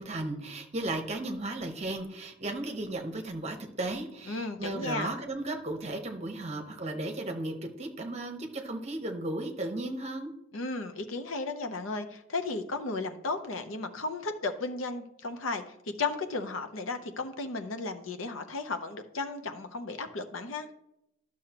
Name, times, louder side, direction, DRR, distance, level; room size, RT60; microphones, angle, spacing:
voice 1, 0.0-10.3, right 2 dB, 30° right, 4 dB, 0.9 m, -35 dB
voice 2, 4.3-5.1 10.5-20.7, left 3 dB, 75° left, 8 dB, 0.7 m, -34 dB
12.0 x 6.3 x 2.9 m, 0.81 s
head